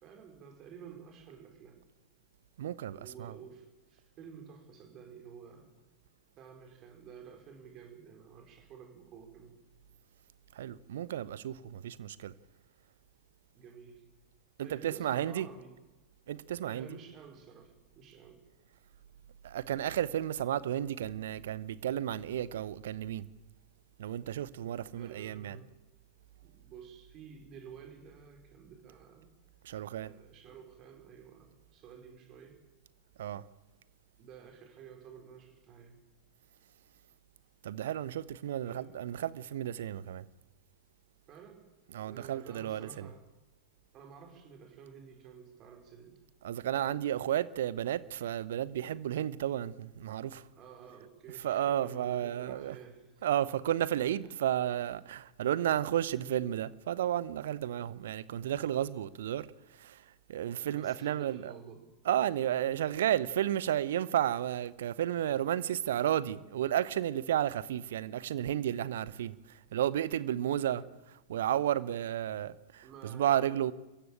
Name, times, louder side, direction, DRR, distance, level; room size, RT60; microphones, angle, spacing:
voice 1, 0.0-1.8 3.0-5.7 6.4-9.6 13.5-14.0 14.6-15.8 16.6-18.4 25.0-25.7 26.4-29.3 30.0-32.6 34.2-36.0 38.6-39.0 41.3-41.7 42.0-43.2 43.9-46.2 50.6-53.3 54.0-54.3 60.7-61.8 70.6-70.8 72.8-73.6, right 7 dB, 35° right, 4.7 m, -51 dB
voice 2, 2.6-3.3 10.6-12.3 14.6-15.5 16.3-17.0 19.4-23.2 24.0-25.6 29.6-30.1 33.2-33.4 37.6-40.2 41.9-43.1 46.4-50.4 51.4-52.8 53.2-59.5 59.8-60.0 60.3-61.5 62.1-70.8 71.3-73.7, right 11 dB, 60° right, 0.8 m, -32 dB
26.5 x 15.0 x 9.0 m
figure-of-eight pair, 90°, 0 cm